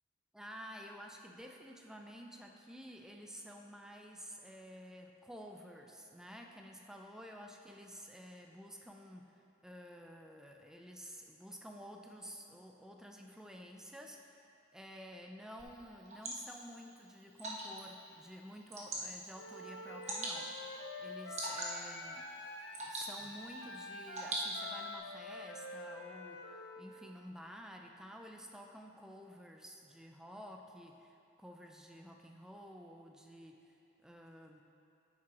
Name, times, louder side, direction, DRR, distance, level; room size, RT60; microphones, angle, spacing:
voice 1, 0.3-14.4 14.7-22.2 22.8-33.8 34.0-34.6, equal, 5° right, 2 dB, 0.4 m, -51 dB
Water / Drip, 15.6-25.0, right 1 dB, 35° right, 1.1 m, -44 dB
Wind instrument woodwind instrument, 19.4-26.8, left 2 dB, 60° left, 0.7 m, -47 dB
9.8 x 7.5 x 3.0 m, 2.7 s
head